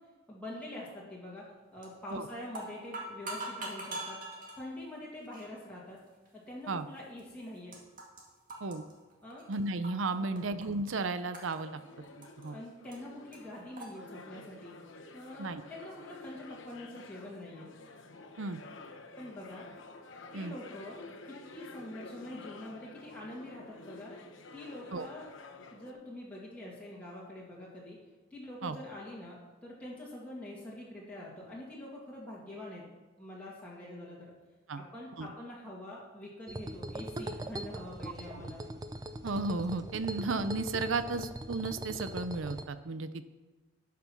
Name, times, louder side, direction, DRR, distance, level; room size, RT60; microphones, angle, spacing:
voice 1, 0.3-1.4 1.7-4.2 4.6-6.0 6.5-7.7 9.2-9.4 10.1-10.4 12.5-14.8 15.1-17.7 19.2-19.6 20.3-21.0 21.5-24.1 24.5-25.3 25.7-28.0 28.3-32.8 33.2-34.3 34.7-38.7, left 1 dB, 5° left, -6 dB, 2.0 m, -45 dB
sound 1, 1.8-2.1 2.4-4.6 5.3-5.5 6.3-6.4 7.2-7.3 7.5-8.2 8.5-10.1 10.4-10.9 11.3-12.5 12.9-13.0 13.3-13.4 13.8-13.9, right 2 dB, 40° right, 2.1 m, -42 dB
voice 2, 9.5-11.8 12.2-12.6 15.4-15.6 18.4-18.6 20.3-20.5 24.9-25.1 28.6-28.8 34.7-34.8 35.2-35.3 39.2-43.2, right 3 dB, 70° right, 12 dB, 0.6 m, -34 dB
sound 2, 11.6-25.9, left 3 dB, 65° left, 1.0 m, -50 dB
sound 3, 36.5-42.6, right 1 dB, 20° right, 0.5 m, -41 dB
12.0 x 6.0 x 6.0 m, 1.2 s
head